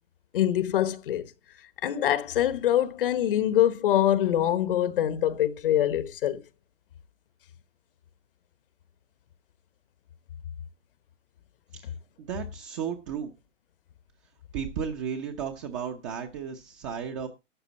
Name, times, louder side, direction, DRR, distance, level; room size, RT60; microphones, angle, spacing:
voice 1, 0.3-1.3 1.8-6.4, left 11 dB, 45° left, 1.1 m, -24 dB
voice 2, 12.2-13.3 14.5-17.3, right 7 dB, 25° right, 1.0 m, -34 dB
12.5 x 8.8 x 4.2 m
hypercardioid pair, 150°, 37 cm